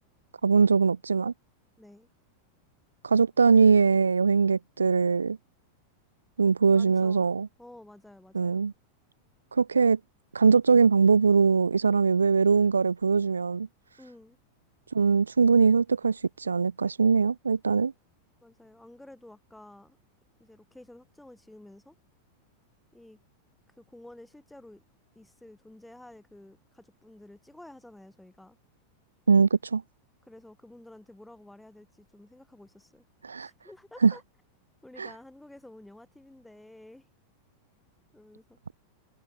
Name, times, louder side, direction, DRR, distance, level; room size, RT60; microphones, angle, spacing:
voice 1, 0.4-1.3 3.0-5.4 6.4-7.5 8.3-8.7 9.5-10.0 10.3-13.7 14.9-17.9 29.3-29.8 33.2-33.5 34.0-34.1 35.0-35.1, right 5 dB, 75° right, 0.4 m, -22 dB
voice 2, 1.8-2.1 6.7-7.3 7.6-8.6 14.0-14.4 18.4-20.0 20.4-22.0 22.9-23.2 23.7-24.8 25.1-28.6 30.2-33.0 33.3-34.2 34.8-37.1 38.1-38.6, left 1 dB, 5° left, 6.2 m, -51 dB
figure-of-eight pair, 90°, 0 cm